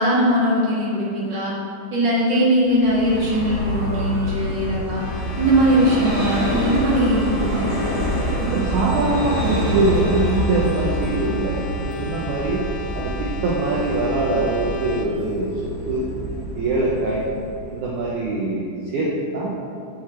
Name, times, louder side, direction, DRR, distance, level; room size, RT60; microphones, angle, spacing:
voice 1, 0.0-1.5 1.9-5.0 5.4-7.9, right 1 dB, 55° right, -7 dB, 1.2 m, -20 dB
Vehicle, 2.7-18.2, equal, 35° right, 1.2 m, -27 dB
sound 1, 4.9-15.1, left 5 dB, 80° left, 2.2 m, -38 dB
voice 2, 8.4-12.6 12.9-16.1 16.6-17.2 17.7-19.5, right 2 dB, 80° right, -4 dB, 1.8 m, -23 dB
6.9 x 6.3 x 4.3 m, 2.5 s
omnidirectional pair, 4.5 m